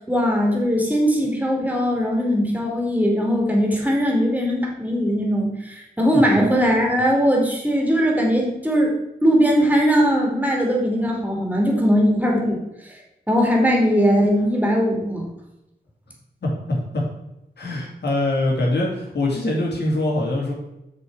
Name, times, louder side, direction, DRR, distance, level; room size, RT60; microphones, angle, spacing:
voice 1, 0.1-8.9 9.2-12.6 12.9-13.0 13.3-15.2, equal, 10° right, -1 dB, 2.6 m, -20 dB
voice 2, 16.4-17.0 17.6-20.5, left 1 dB, 85° left, -2 dB, 2.8 m, -23 dB
7.1 x 6.8 x 4.8 m, 0.89 s
wide cardioid pair, 90°, 17 cm